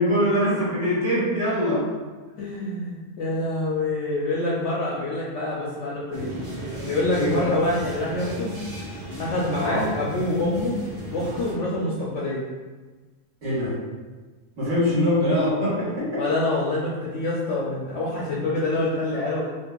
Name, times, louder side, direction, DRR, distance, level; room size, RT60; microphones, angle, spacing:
voice 1, 0.0-1.8 7.1-7.4 9.6-9.8 13.4-13.7 14.6-16.1, left 1 dB, 55° right, -10 dB, 1.8 m, -23 dB
voice 2, 2.4-6.3 6.8-8.6 9.2-10.8 11.1-12.4 16.1-19.4, left 2 dB, 65° left, -5 dB, 0.8 m, -26 dB
sound 1, 6.1-11.5, right 1 dB, 90° right, 1.6 m, -35 dB
4.2 x 2.5 x 2.3 m, 1.3 s
omnidirectional pair, 1.6 m